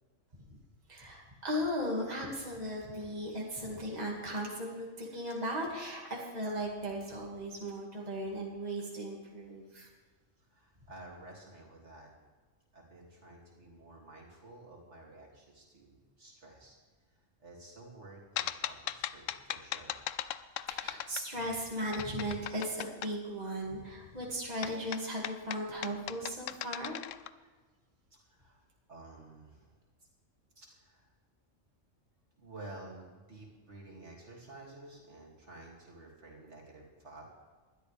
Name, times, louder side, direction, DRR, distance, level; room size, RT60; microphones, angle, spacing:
voice 1, 0.9-9.9 20.7-27.0, equal, 35° right, -3 dB, 2.4 m, -37 dB
voice 2, 10.4-12.1 12.7-16.8 17.1-20.0 28.2-28.6 28.9-29.7 30.0-30.1 30.6-31.1 32.4-37.3, right 2 dB, 65° right, -2 dB, 3.0 m, -52 dB
sound 1, 18.4-21.6 21.9-23.1 24.6-27.3, left 12 dB, 80° left, 0.9 m, -38 dB
20.0 x 12.5 x 3.5 m, 1.4 s
omnidirectional pair, 1.3 m